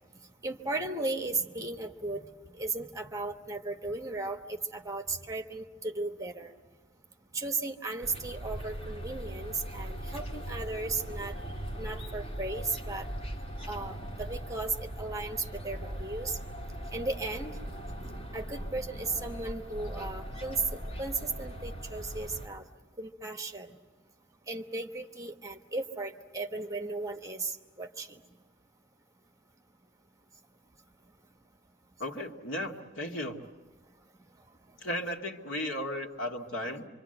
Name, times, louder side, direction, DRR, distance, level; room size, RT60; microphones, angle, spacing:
voice 1, 0.4-2.2 2.5-6.5 7.3-11.4 11.8-13.1 13.7-16.4 16.9-17.6 18.3-22.6 23.0-23.8 24.5-28.2, right 3 dB, 15° right, 5 dB, 1.2 m, -36 dB
sound 1, 8.0-22.5, right 1 dB, 30° left, 2.9 m, -39 dB
voice 2, 32.0-33.4 34.8-36.9, left 1 dB, 85° left, 2 dB, 2.2 m, -35 dB
26.0 x 25.5 x 7.9 m, 1.3 s
head